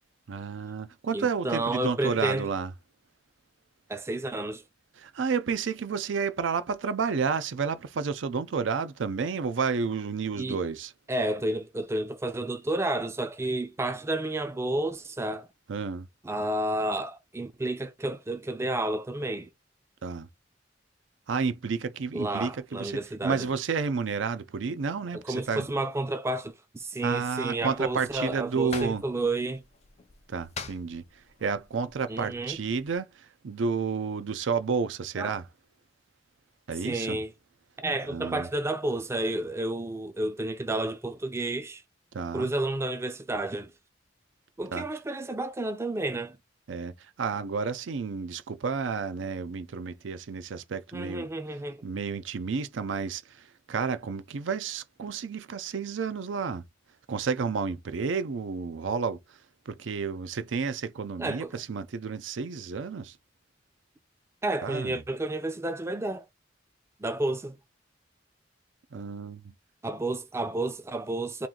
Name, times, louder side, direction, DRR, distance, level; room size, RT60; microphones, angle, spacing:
voice 1, 0.3-2.7 5.0-10.9 15.7-16.1 20.0-20.3 21.3-25.7 27.0-29.0 30.3-35.5 36.7-37.2 38.1-38.5 42.1-42.5 44.7-44.9 46.7-51.3 51.8-56.6 57.1-59.4 59.7-63.2 64.6-65.0 68.9-69.5, right 5 dB, 85° right, 0.5 m, -31 dB
voice 2, 1.1-2.5 3.9-4.6 10.4-10.6 11.1-15.5 16.2-19.5 22.1-23.5 25.1-29.6 32.1-32.6 35.2-35.4 36.8-37.3 37.8-41.8 42.3-43.7 44.6-46.4 50.9-51.9 61.2-61.6 64.4-66.3 67.0-67.5 69.8-71.5, right 2 dB, 15° right, 0.4 m, -31 dB
sound 1, 27.6-32.9, left 5 dB, 35° left, 0.5 m, -46 dB
3.0 x 2.5 x 3.7 m
head